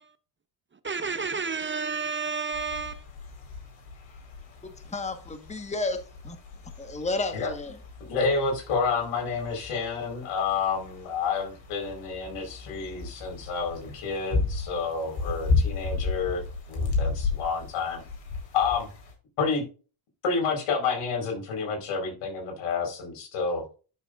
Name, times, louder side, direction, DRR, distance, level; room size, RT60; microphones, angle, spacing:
voice 1, 0.9-2.9, right 5 dB, 25° right, 0.6 m, -30 dB
sound 1, 2.5-19.1, left 3 dB, 65° left, 4.4 m, -34 dB
voice 2, 4.6-6.4 6.8-7.7, left 3 dB, 15° left, 1.4 m, -32 dB
voice 3, 8.0-16.4 16.7-18.0 18.5-18.9 19.4-19.6 20.2-23.6, left 5 dB, 85° left, 4.6 m, -29 dB
11.0 x 6.8 x 2.5 m
cardioid pair, 105°, 49 cm